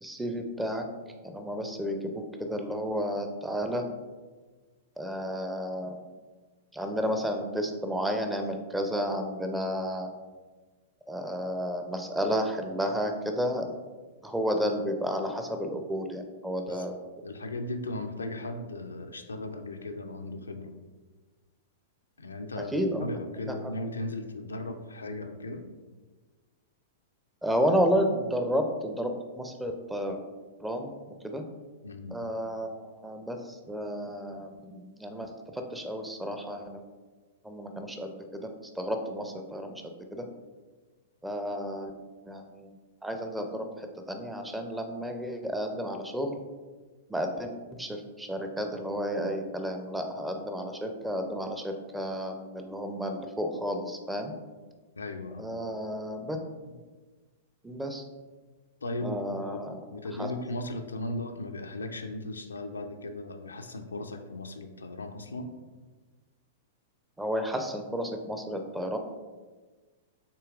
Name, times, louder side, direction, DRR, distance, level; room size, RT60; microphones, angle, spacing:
voice 1, 0.0-0.8 1.2-3.8 5.0-6.0 6.7-10.1 11.1-13.7 14.2-16.9 22.6-23.1 27.4-30.2 30.6-30.9 31.2-31.4 32.1-36.8 37.4-38.4 38.8-40.3 41.2-41.9 42.2-42.7 43.0-46.4 47.1-54.3 55.4-56.4 56.7-56.8 57.6-58.0 59.0-59.8 60.2-60.3 67.2-69.0, equal, 5° right, 5 dB, 0.5 m, -32 dB
voice 2, 17.2-20.7 22.2-25.7 31.8-32.2 55.0-55.5 58.8-65.5, left 2 dB, 75° left, 6 dB, 0.4 m, -37 dB
6.7 x 2.9 x 2.4 m, 1.3 s
figure-of-eight pair, 100°, 0 cm